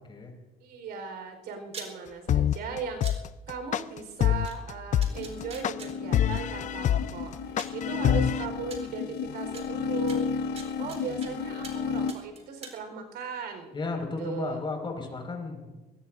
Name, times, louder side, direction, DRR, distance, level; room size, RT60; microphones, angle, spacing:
voice 1, 0.6-3.2 3.5-10.4 10.8-14.6, right 5 dB, 75° right, 5 dB, 4.5 m, -38 dB
sound 1, 1.7-1.9 3.0-3.2 4.4-4.5 5.0-5.9 7.0-7.1 7.6-7.8 8.7-8.8 9.5-9.6 10.1-11.3 11.6-11.8 12.1-12.8, right 4 dB, 40° right, 4.0 m, -42 dB
sound 2, 2.3-8.5, left 10 dB, 45° left, 0.5 m, -25 dB
sound 3, 5.1-12.1, left 6 dB, 80° left, 1.0 m, -33 dB
voice 2, 13.7-15.7, left 3 dB, 30° left, 2 dB, 5.4 m, -34 dB
23.0 x 20.0 x 2.6 m, 1.2 s
cardioid pair, 110°, 17 cm